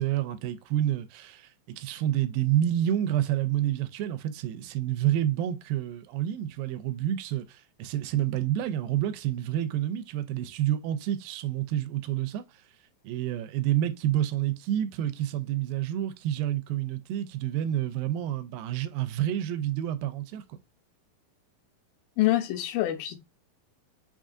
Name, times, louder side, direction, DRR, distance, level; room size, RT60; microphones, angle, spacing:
voice 1, 0.0-1.5 1.8-12.5 13.0-20.4, right 12 dB, 90° right, 2.4 m, -28 dB
voice 2, 22.2-23.2, left 15 dB, 85° left, 2.4 m, -25 dB
5.6 x 3.6 x 2.5 m
omnidirectional pair, 4.0 m